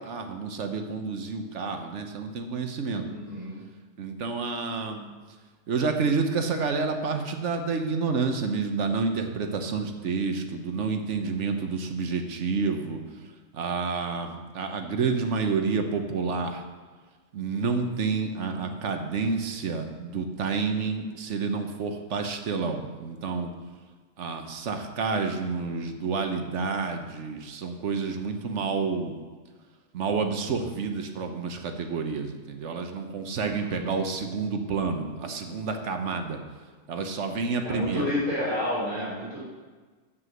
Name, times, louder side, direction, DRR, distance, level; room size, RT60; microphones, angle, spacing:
voice 1, 0.0-3.1 4.0-5.1 5.7-13.0 13.5-16.6 17.3-23.5 24.2-29.2 29.9-36.4 36.9-38.1, right 4 dB, 75° right, 5 dB, 1.2 m, -29 dB
voice 2, 3.0-3.6 33.3-34.0 37.6-39.4, left 1 dB, 25° right, -9 dB, 3.6 m, -31 dB
7.6 x 6.1 x 7.9 m, 1.4 s
omnidirectional pair, 1.3 m